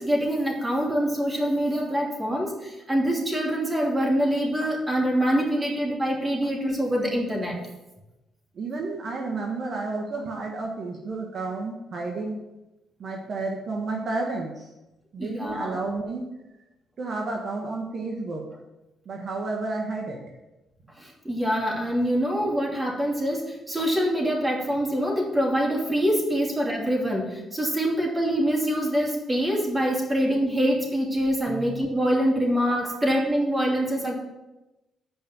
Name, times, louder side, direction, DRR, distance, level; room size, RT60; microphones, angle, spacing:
voice 1, 0.0-7.6 15.2-15.8 21.0-34.1, equal, 15° right, -1 dB, 2.8 m, -25 dB
voice 2, 8.6-12.4 13.0-14.7 15.1-16.3 17.0-18.4 19.0-20.2 31.4-31.9 32.9-33.1, right 3 dB, 55° right, 0 dB, 1.4 m, -31 dB
8.7 x 5.2 x 7.4 m, 0.99 s
cardioid pair, 90°, 0 cm